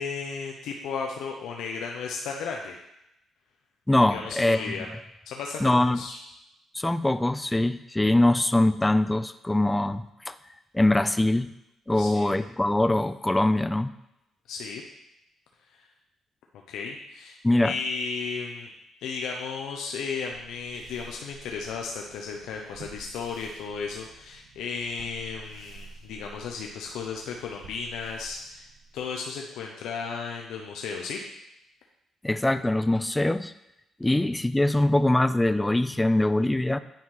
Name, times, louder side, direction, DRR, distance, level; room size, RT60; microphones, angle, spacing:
voice 1, 0.0-2.8 4.1-4.9 5.3-5.6 5.9-6.2 12.0-12.3 14.5-14.8 15.7-15.9 16.7-18.7 19.0-28.7 28.9-31.2, left 5 dB, 85° left, 1 dB, 0.7 m, -34 dB
voice 2, 3.9-4.8 5.6-6.0 6.7-10.4 10.7-11.5 11.9-13.9 17.4-17.7 32.2-33.5 34.0-36.8, left 1 dB, 10° left, 12 dB, 0.3 m, -23 dB
sound 1, 20.3-29.2, right 4 dB, 65° right, 1.0 m, -50 dB
9.1 x 4.4 x 3.8 m, 0.86 s
cardioid pair, 90°, 0 cm